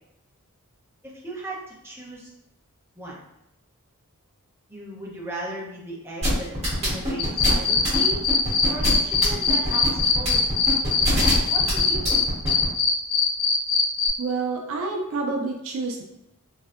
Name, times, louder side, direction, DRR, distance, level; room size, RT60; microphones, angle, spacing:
voice 1, 1.0-1.6 1.8-2.3 3.0-3.2 4.7-6.5 6.8-8.2 8.7-10.6 11.5-12.2, right 2 dB, 10° right, -5 dB, 0.7 m, -36 dB
sound 1, 6.2-12.6, equal, 30° right, 1.5 m, -24 dB
sound 2, 7.2-12.2 12.5-14.1, left 6 dB, 85° left, 0.8 m, -21 dB
voice 2, 14.2-16.0, right 3 dB, 65° right, 2 dB, 0.4 m, -28 dB
3.2 x 2.6 x 2.4 m, 0.85 s
head